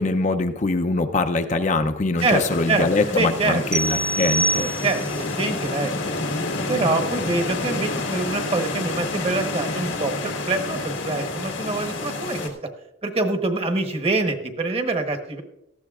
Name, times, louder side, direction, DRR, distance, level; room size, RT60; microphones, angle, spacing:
voice 1, 0.0-4.7, left 3 dB, 40° left, 8 dB, 0.5 m, -23 dB
sound 1, 2.2-12.5, left 2 dB, 85° left, 1.6 m, -29 dB
voice 2, 2.7-3.6 4.5-5.9 6.7-12.5 13.0-15.4, right 3 dB, 30° right, 6 dB, 1.1 m, -25 dB
sound 2, 3.7-5.2, right 2 dB, 15° right, 0.4 m, -25 dB
18.0 x 13.0 x 2.4 m, 0.85 s
head